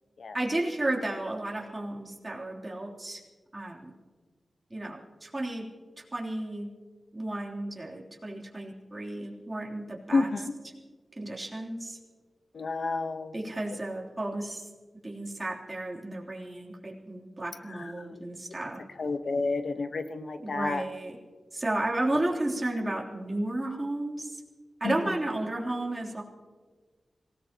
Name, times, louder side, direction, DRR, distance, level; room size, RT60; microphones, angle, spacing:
voice 1, 0.3-3.2 3.5-3.9 4.7-5.7 6.0-6.7 7.1-10.3 11.2-12.0 13.3-14.7 15.0-18.8 20.4-21.1 21.5-24.4 24.8-26.2, right 1 dB, 25° right, -3 dB, 3.2 m, -33 dB
voice 2, 10.1-10.5 12.5-13.3 17.7-18.2 19.0-20.8 24.8-24.9, left 3 dB, 75° left, 8 dB, 1.1 m, -30 dB
25.5 x 17.5 x 3.0 m, 1.4 s
wide cardioid pair, 85°, 0 cm